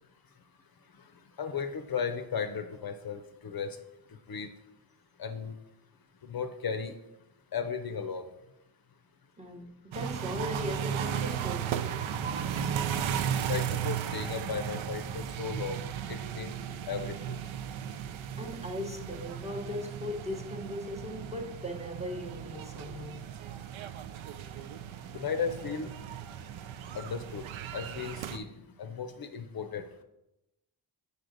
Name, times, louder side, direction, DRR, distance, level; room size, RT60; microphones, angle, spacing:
voice 1, 1.4-3.8 4.3-4.5 5.2-5.5 6.2-6.9 7.5-8.2 13.5-15.8 16.1-16.6 16.9-17.2 25.1-25.9 26.9-27.5 27.7-28.5 28.8-30.0, left 6 dB, 50° left, 0.6 m, -35 dB
voice 2, 9.4-11.9 18.4-23.3, left 1 dB, 15° right, 0.9 m, -38 dB
sound 1, 9.9-28.4, right 8 dB, 80° right, 0.6 m, -36 dB
6.4 x 5.3 x 3.9 m
wide cardioid pair, 95°, 47 cm